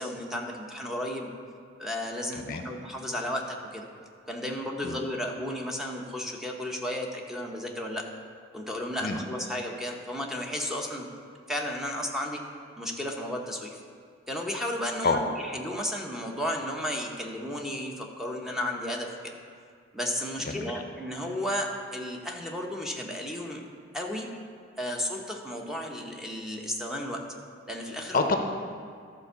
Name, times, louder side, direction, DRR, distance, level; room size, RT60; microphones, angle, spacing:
voice 1, 0.0-1.3 1.8-3.9 4.3-8.0 8.5-11.1 11.5-12.4 12.8-13.8 14.3-19.3 19.9-23.7 23.9-24.3 24.8-27.2 27.7-28.3, left 1 dB, ahead, 0 dB, 0.9 m, -33 dB
voice 2, 2.3-2.7 4.8-5.0 9.0-9.2 15.0-15.2 20.4-20.7 28.1-28.4, left 4 dB, 50° left, 5 dB, 0.6 m, -27 dB
12.0 x 4.5 x 6.8 m, 2.3 s
head